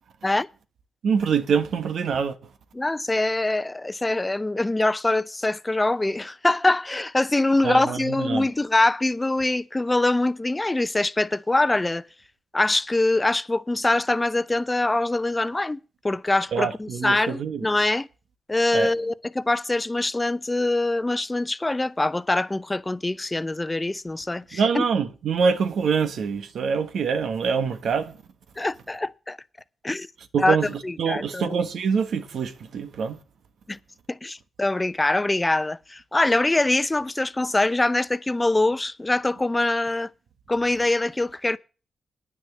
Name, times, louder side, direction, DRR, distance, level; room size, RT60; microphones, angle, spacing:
voice 1, 1.0-2.3 7.6-8.5 16.5-17.7 18.7-18.9 24.5-28.2 30.3-33.2, right 6 dB, 80° right, 1.4 m, -25 dB
voice 2, 2.7-12.1 12.5-18.1 18.5-24.8 28.6-29.4 29.8-30.1 30.4-30.6 30.8-31.6 33.7-33.8 34.1-40.1 40.5-41.6, left 2 dB, 20° left, 0.7 m, -24 dB
9.9 x 6.3 x 8.5 m
cardioid pair, 60°, 0 cm